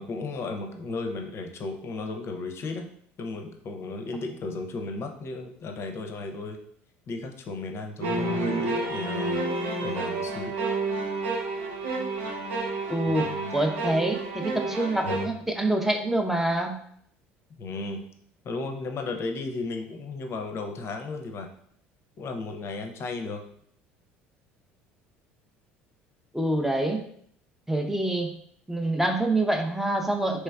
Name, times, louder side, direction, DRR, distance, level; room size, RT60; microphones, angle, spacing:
voice 1, 0.0-2.9 3.2-6.6 7.1-9.4 9.8-10.5 13.1-13.5 17.6-18.0 18.4-21.5 22.2-23.4, left 3 dB, 45° left, 5 dB, 0.6 m, -34 dB
sound 1, 8.0-15.3, right 2 dB, 75° right, 0.5 m, -30 dB
voice 2, 12.9-16.8 26.3-27.0 27.7-28.3 28.7-30.4, right 1 dB, 5° right, 3 dB, 0.5 m, -26 dB
3.1 x 3.1 x 2.3 m, 0.65 s
hypercardioid pair, 65°, 6 cm